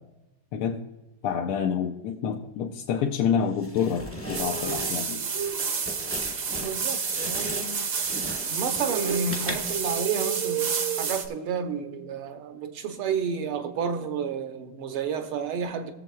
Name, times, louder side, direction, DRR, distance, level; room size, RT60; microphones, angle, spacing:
voice 1, 0.5-0.8 1.2-5.2, left 7 dB, 90° left, 2 dB, 1.6 m, -28 dB
sound 1, 3.6-9.9, left 1 dB, 15° left, 0.5 m, -38 dB
sound 2, 4.3-11.3, right 6 dB, 55° right, 0.8 m, -29 dB
voice 2, 6.6-7.8 8.5-10.7 11.0-15.9, right 6 dB, 80° right, 6 dB, 1.7 m, -31 dB
20.5 x 7.3 x 2.3 m, 1.0 s
omnidirectional pair, 2.4 m